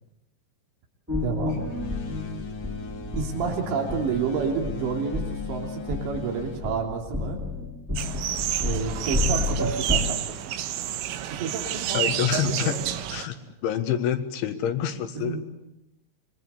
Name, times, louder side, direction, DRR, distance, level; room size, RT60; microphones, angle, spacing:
sound 1, 1.1-10.1, left 3 dB, 5° right, 2.2 m, -31 dB
voice 1, 1.2-1.6 3.2-7.4 8.6-10.7 11.3-12.0 12.3-13.0 15.2-15.4, right 6 dB, 70° right, 2 dB, 5.3 m, -30 dB
sound 2, 1.5-7.5, left 4 dB, 55° left, 1.6 m, -38 dB
sound 3, 8.0-13.3, right 12 dB, 85° right, 3.6 m, -29 dB
voice 2, 11.9-12.8 13.1-13.4 13.6-15.4, left 9 dB, 85° left, 7 dB, 3.9 m, -27 dB
26.0 x 21.5 x 8.2 m, 0.89 s
omnidirectional pair, 5.3 m